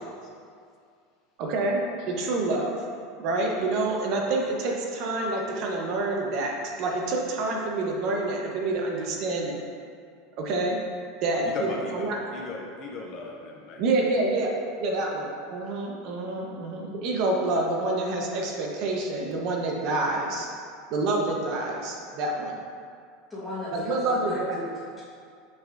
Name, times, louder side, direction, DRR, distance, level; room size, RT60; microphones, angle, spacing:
voice 1, 1.4-1.8 2.1-2.7 3.2-6.5 6.8-9.6 10.4-10.8 11.2-12.2 13.8-14.5 14.8-20.5 20.9-22.5 23.7-24.6, right 2 dB, 45° right, 0 dB, 0.8 m, -27 dB
voice 2, 11.5-14.1 15.0-15.1, left 2 dB, 35° left, 0 dB, 0.5 m, -37 dB
voice 3, 23.3-25.0, left 1 dB, 10° left, -12 dB, 1.2 m, -37 dB
7.3 x 6.0 x 2.5 m, 2.2 s
supercardioid pair, 165°, 0 cm